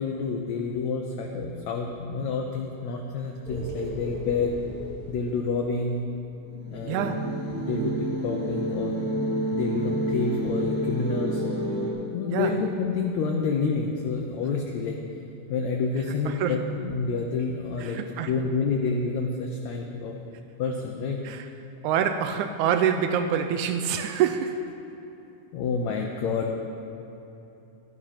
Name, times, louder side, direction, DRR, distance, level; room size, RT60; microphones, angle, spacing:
voice 1, 0.0-4.6 5.1-6.0 6.7-7.2 7.5-9.0 9.5-11.4 12.1-15.0 15.5-18.0 18.3-20.2 20.6-21.2 25.5-26.6, left 4 dB, 70° left, 2 dB, 1.8 m, -28 dB
sound 1, 3.4-5.6 6.5-11.9, right 1 dB, 20° right, 2.3 m, -30 dB
voice 2, 6.9-7.3 12.3-12.6 16.2-16.6 17.8-18.3 21.2-21.5 21.8-24.7, right 8 dB, 85° right, 6 dB, 1.7 m, -26 dB
12.5 x 10.0 x 5.7 m, 3.0 s
omnidirectional pair, 3.9 m